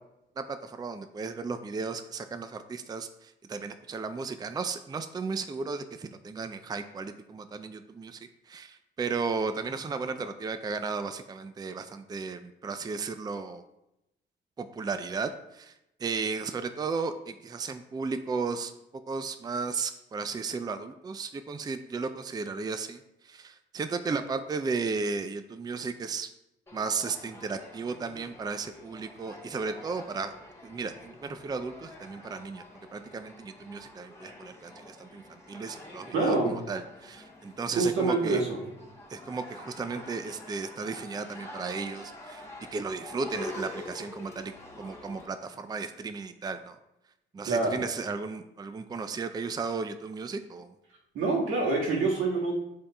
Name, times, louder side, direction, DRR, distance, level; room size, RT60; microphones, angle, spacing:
voice 1, 0.4-8.2 8.5-13.6 14.6-15.7 16.0-18.7 19.1-26.3 26.7-30.3 30.6-32.6 32.9-38.4 39.1-42.4 42.7-46.8 47.3-50.7, right 4 dB, 20° right, 9 dB, 0.4 m, -35 dB
sound 1, 26.7-45.3, left 1 dB, 15° left, 1.9 m, -46 dB
voice 2, 36.1-36.6 37.8-38.6 47.5-47.8 51.1-52.5, right 3 dB, 85° right, -2 dB, 1.7 m, -26 dB
6.7 x 3.7 x 4.3 m, 0.86 s
cardioid pair, 90°, 20 cm